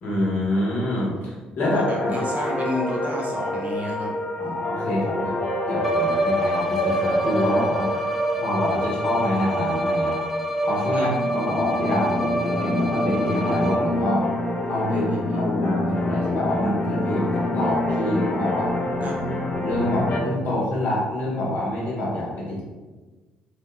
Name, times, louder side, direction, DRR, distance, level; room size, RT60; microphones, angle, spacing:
voice 1, 0.0-2.2 4.4-7.9 8.4-10.2 10.6-14.3 14.7-18.7 19.4-22.6, left 1 dB, 65° left, -5 dB, 1.0 m, -26 dB
sound 1, 1.6-20.2, left 1 dB, 40° left, 0.5 m, -27 dB
voice 2, 1.6-4.6 10.9-11.1 14.9-15.4 19.0-19.2, equal, 45° right, -2 dB, 0.7 m, -31 dB
Bowed string instrument, 5.8-14.1, right 1 dB, ahead, 0.6 m, -27 dB
3.0 x 2.1 x 2.2 m, 1.3 s
supercardioid pair, 60°, 3 cm